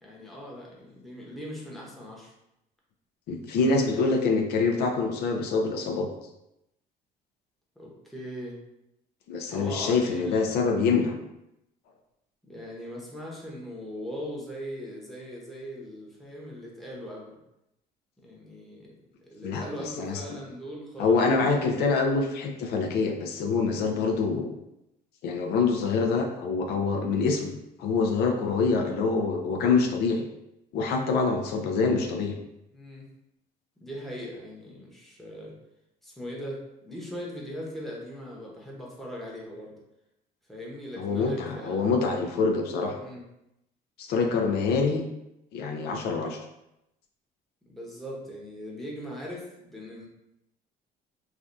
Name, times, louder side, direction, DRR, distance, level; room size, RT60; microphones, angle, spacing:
voice 1, 0.0-2.3 3.6-4.0 7.8-8.6 9.5-10.4 12.5-17.4 18.2-18.9 19.2-21.5 23.7-24.0 32.7-33.0 33.8-35.5 36.0-39.7 40.5-41.8 43.0-43.3 47.7-50.1, equal, ahead, -4 dB, 0.8 m, -40 dB
voice 2, 3.3-6.1 9.3-11.1 19.4-19.7 20.0-20.2 21.0-24.5 25.2-30.2 30.7-32.3 41.0-43.0 44.0-45.0 45.5-46.4, left 4 dB, 75° left, 3 dB, 0.4 m, -25 dB
3.2 x 2.3 x 2.6 m, 0.86 s
cardioid pair, 110°, 17 cm